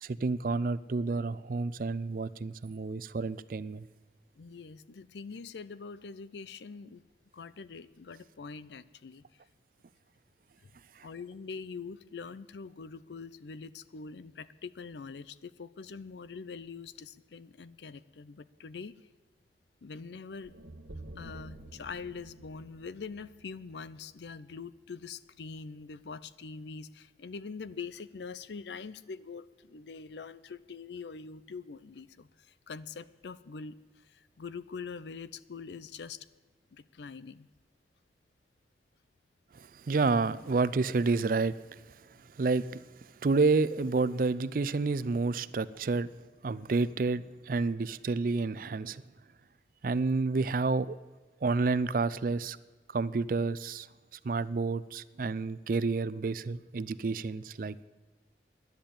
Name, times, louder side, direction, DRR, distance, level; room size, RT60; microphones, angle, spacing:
voice 1, 0.0-3.9 39.5-41.8 42.4-42.8 43.2-46.1 46.4-49.0 49.8-51.0 51.4-52.6 52.9-53.9 54.2-57.7, right 3 dB, 50° right, 18 dB, 0.4 m, -29 dB
voice 2, 4.4-7.0 7.3-9.2 10.6-10.7 11.0-18.9 19.8-20.5 21.2-36.3 36.7-37.5, left 5 dB, 75° left, 17 dB, 0.5 m, -44 dB
sound 1, 20.4-24.6, right 1 dB, 90° right, 1.2 m, -49 dB
10.5 x 10.5 x 8.5 m, 1.3 s
head